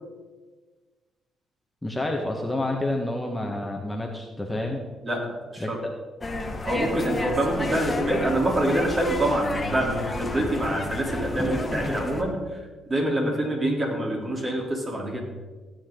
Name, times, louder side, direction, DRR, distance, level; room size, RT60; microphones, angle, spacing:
voice 1, 1.8-4.8 5.6-5.7, left 1 dB, 10° left, 1 dB, 1.4 m, -29 dB
voice 2, 5.0-5.8 6.6-12.3 12.9-15.2, right 1 dB, 30° right, -1 dB, 3.4 m, -26 dB
sound 1, 6.2-12.2, left 2 dB, 25° left, 1.6 m, -31 dB
16.0 x 9.0 x 3.8 m, 1.4 s
cardioid pair, 90°, 0 cm